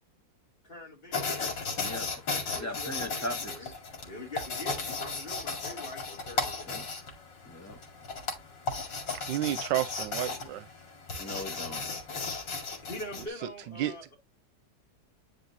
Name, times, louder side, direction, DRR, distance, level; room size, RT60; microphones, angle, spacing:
voice 1, 0.6-1.2 2.4-3.3 3.5-3.7 4.0-6.7 8.0-8.1 12.8-14.2, left 1 dB, 30° left, 3.2 m, -43 dB
sound 1, 1.1-13.3, left 4 dB, 85° left, 3.0 m, -35 dB
voice 2, 1.8-2.2 2.6-3.7 6.7-6.8 7.4-7.8 11.2-11.9, left 1 dB, 10° left, 1.3 m, -39 dB
voice 3, 9.1-10.7 13.4-13.9, right 13 dB, 85° right, 1.3 m, -32 dB
9.4 x 5.0 x 2.9 m
omnidirectional pair, 1.9 m